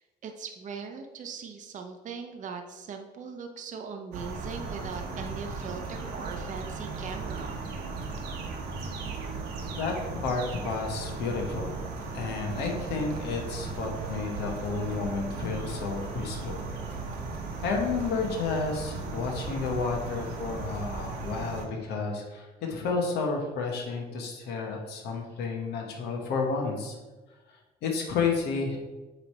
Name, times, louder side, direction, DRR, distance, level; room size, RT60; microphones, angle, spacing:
voice 1, 0.0-7.6, right 5 dB, 50° right, 5 dB, 0.8 m, -40 dB
sound 1, 4.1-21.7, right 4 dB, 80° right, 1.2 m, -36 dB
voice 2, 10.2-11.7 12.1-16.6 17.6-27.0 27.8-28.8, left 4 dB, 75° left, 1 dB, 1.2 m, -31 dB
8.1 x 3.3 x 4.3 m, 1.2 s
cardioid pair, 110°, 17 cm